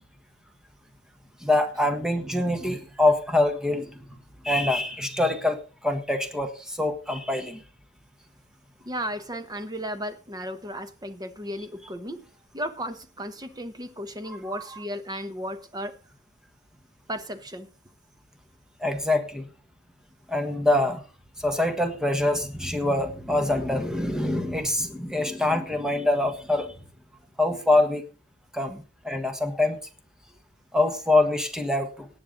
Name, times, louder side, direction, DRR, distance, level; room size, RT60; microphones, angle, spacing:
voice 1, 1.4-3.9 4.4-7.6 14.5-14.6 18.8-19.5 20.3-21.0 21.4-26.7 27.4-28.0 28.5-29.8 30.7-32.1, left 2 dB, 5° right, 1.4 m, -25 dB
voice 2, 8.8-12.2 12.5-16.0 17.1-17.7, equal, 20° right, 1.1 m, -34 dB
18.0 x 9.4 x 4.0 m
head